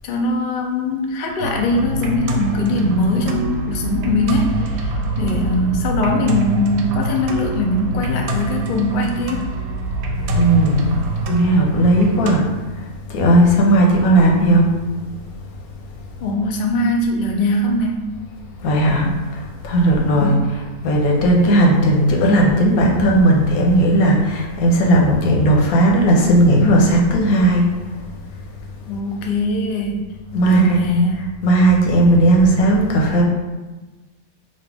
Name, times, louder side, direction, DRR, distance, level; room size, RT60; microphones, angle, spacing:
voice 1, 0.0-9.5 16.2-18.1 20.1-20.5 28.9-30.0 30.4-31.2, left 1 dB, 55° left, 1 dB, 0.5 m, -21 dB
sound 1, 1.4-12.3, right 1 dB, 90° right, 1.1 m, -25 dB
voice 2, 10.3-11.0 11.3-14.7 18.6-28.1 30.3-30.8 31.2-33.2, right 1 dB, 85° left, -1 dB, 1.3 m, -16 dB
5.4 x 2.5 x 3.4 m, 1.2 s
omnidirectional pair, 1.5 m